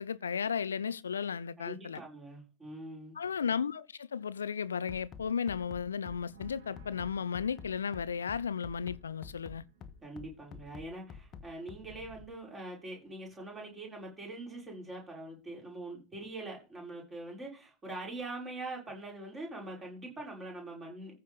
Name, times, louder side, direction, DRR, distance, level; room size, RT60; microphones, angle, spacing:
voice 1, 0.0-2.0 3.2-9.6, left 7 dB, 70° left, 0.5 m, -34 dB
voice 2, 1.6-3.2 10.0-21.2, right 2 dB, 20° right, 6.3 m, -43 dB
Bass drum, 4.9-12.3, left 6 dB, 30° left, 1.2 m, -48 dB
sound 1, 6.3-13.8 14.1-14.6, right 2 dB, 60° right, 3.3 m, -63 dB
14.5 x 5.6 x 5.2 m
figure-of-eight pair, 90°, 0 cm